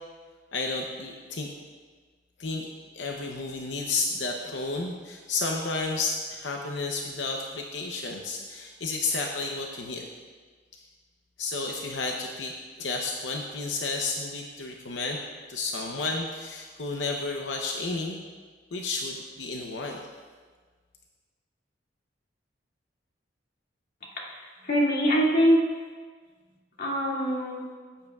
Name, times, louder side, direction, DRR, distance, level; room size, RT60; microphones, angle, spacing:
voice 1, 0.5-1.5 2.4-2.7 2.9-10.1 10.7-10.9 11.4-15.2 15.5-18.2 18.7-20.0, left 3 dB, 75° left, 1 dB, 0.8 m, -32 dB
voice 2, 24.2-25.7 26.8-27.6, equal, 55° left, -4 dB, 2.3 m, -24 dB
15.5 x 9.4 x 2.4 m, 1.5 s
head